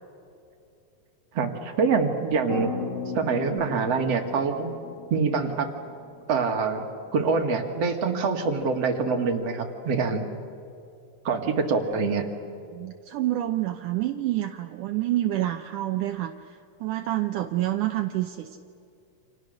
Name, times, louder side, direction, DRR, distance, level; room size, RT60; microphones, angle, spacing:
voice 1, 1.3-2.7 3.1-4.7 5.1-5.7 6.3-6.8 7.1-10.3 11.2-12.3, right 4 dB, 50° right, 4 dB, 2.7 m, -25 dB
sound 1, 2.5-6.6, left 5 dB, 25° left, 2.0 m, -36 dB
voice 2, 12.7-18.6, right 14 dB, 75° right, 6 dB, 2.2 m, -28 dB
29.5 x 27.5 x 6.6 m, 2.6 s
omnidirectional pair, 4.0 m